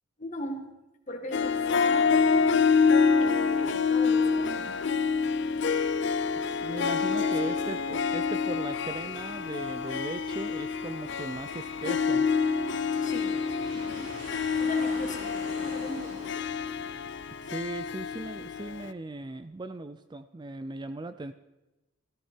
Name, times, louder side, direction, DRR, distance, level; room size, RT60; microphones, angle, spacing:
voice 1, 0.2-0.6 1.1-2.5 3.2-4.8 7.2-7.8 13.0-13.4 13.7-14.1 14.6-15.4 15.6-16.3, left 2 dB, 35° left, 4 dB, 1.9 m, -38 dB
Harp, 1.3-18.9, left 5 dB, 60° left, 0.5 m, -27 dB
voice 2, 6.5-12.3 17.4-21.3, right 2 dB, 20° right, 11 dB, 0.4 m, -38 dB
Aircraft, 7.6-18.6, right 1 dB, 65° right, 6.5 m, -48 dB
16.0 x 14.0 x 4.5 m, 1.0 s
head